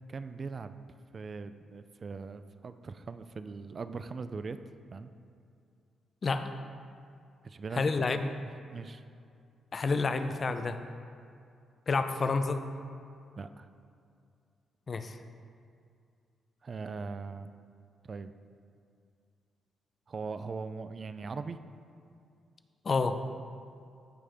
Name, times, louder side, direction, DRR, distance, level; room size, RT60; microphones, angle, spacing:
voice 1, 0.1-0.8 1.1-4.6 4.9-5.1 7.4-8.1 8.4-9.0 13.4-13.7 16.6-17.5 18.0-18.3 20.1-21.6, right 4 dB, 40° right, 11 dB, 0.4 m, -40 dB
voice 2, 6.2-6.5 7.7-8.3 9.7-10.8 11.9-12.7 14.9-15.2 22.8-23.2, left 4 dB, 40° left, 9 dB, 0.5 m, -29 dB
15.0 x 5.5 x 3.5 m, 2.4 s
cardioid pair, 115°, 0 cm